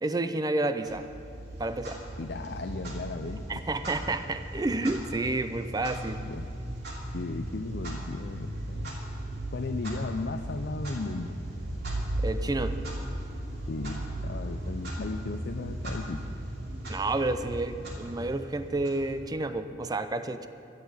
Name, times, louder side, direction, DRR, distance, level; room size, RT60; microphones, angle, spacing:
voice 1, 0.0-1.0 1.6-2.0 3.5-6.2 12.2-12.8 16.9-20.5, right 2 dB, 20° right, 10 dB, 0.4 m, -30 dB
Clock, 0.8-19.5, right 1 dB, 60° right, 2.9 m, -37 dB
voice 2, 2.2-3.4 6.3-6.5 7.1-9.0 9.5-11.4 13.7-16.2, left 3 dB, 60° left, 6 dB, 0.5 m, -36 dB
13.0 x 6.7 x 9.7 m, 2.7 s
head